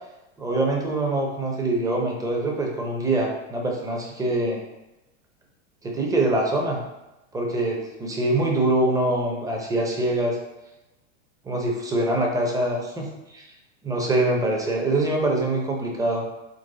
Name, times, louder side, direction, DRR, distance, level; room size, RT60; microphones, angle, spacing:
voice 1, 0.4-4.6 5.8-6.8 7.3-10.4 11.4-13.5 13.8-16.2, right 1 dB, 10° right, 0 dB, 0.7 m, -24 dB
3.9 x 3.0 x 3.9 m, 0.99 s
supercardioid pair, 125°, 38 cm